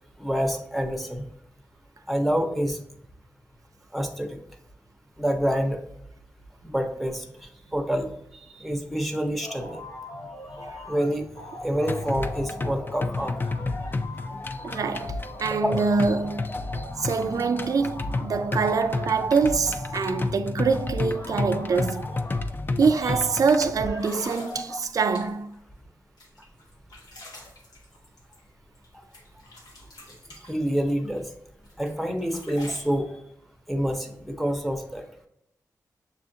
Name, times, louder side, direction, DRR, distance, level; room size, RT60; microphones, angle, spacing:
voice 1, 0.2-1.3 2.1-2.8 3.9-4.4 5.2-5.8 6.6-9.8 10.8-13.4 15.5-15.8 18.3-18.4 23.0-23.1 30.5-31.3 31.8-33.2 33.7-35.0, equal, ahead, 0.7 m, -27 dB
sound 1, 9.4-11.1 11.3-20.3 20.7-22.5 22.9-25.2, left 1 dB, 75° left, 0.8 m, -40 dB
sound 2, 11.9-23.9, left 3 dB, 30° left, 0.4 m, -31 dB
voice 2, 14.6-16.5 17.0-22.0 22.8-25.5, right 5 dB, 60° right, 0.3 m, -25 dB
sound 3, 22.5-22.7 23.4-23.5 23.9-25.6 26.2-28.9 29.1-31.2 31.6-33.0, left 1 dB, 90° left, 1.1 m, -47 dB
6.9 x 2.4 x 2.6 m
wide cardioid pair, 85°, 7 cm